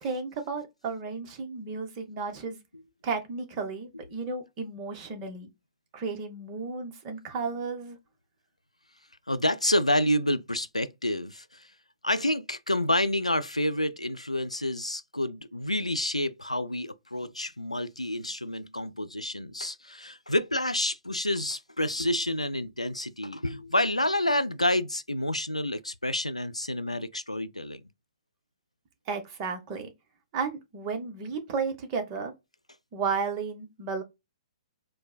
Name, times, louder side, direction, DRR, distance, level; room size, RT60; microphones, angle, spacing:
voice 1, 0.0-2.6 3.0-5.5 5.9-8.0 29.1-29.9 30.3-32.3 32.9-34.0, right 5 dB, 30° right, 0.9 m, -33 dB
voice 2, 9.3-11.7 12.0-27.8, left 1 dB, 90° left, 0.3 m, -28 dB
4.5 x 2.1 x 2.3 m
figure-of-eight pair, 120°, 3 cm